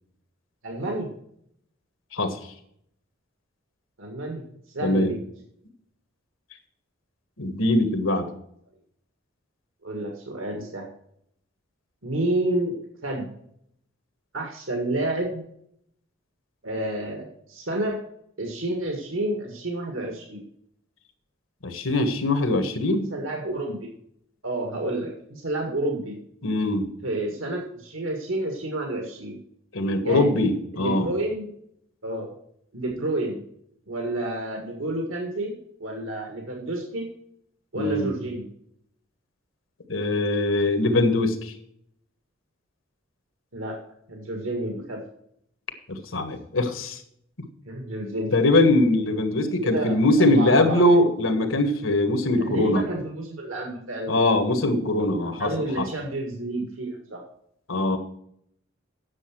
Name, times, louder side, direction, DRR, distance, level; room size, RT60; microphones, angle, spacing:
voice 1, 0.6-1.1 4.0-4.4 4.7-5.2 9.8-10.9 12.0-12.8 13.0-13.3 14.3-15.4 16.6-18.0 18.4-20.4 23.1-23.9 24.4-26.2 27.0-29.4 30.0-30.4 30.7-31.5 32.0-32.3 32.7-33.4 33.9-35.5 35.8-37.1 37.7-38.5 43.5-43.8 44.1-45.0 47.7-48.3 49.4-50.8 52.4-54.3 55.0-57.2, right 1 dB, 75° right, 2 dB, 2.0 m, -30 dB
voice 2, 4.8-5.1 7.4-8.3 21.6-23.1 26.4-26.9 29.7-31.1 37.7-38.1 39.9-41.5 45.9-47.0 48.3-52.8 54.1-55.5 55.8-55.9 57.7-58.0, left 2 dB, 85° left, 8 dB, 1.6 m, -22 dB
9.8 x 7.1 x 6.1 m, 0.71 s
head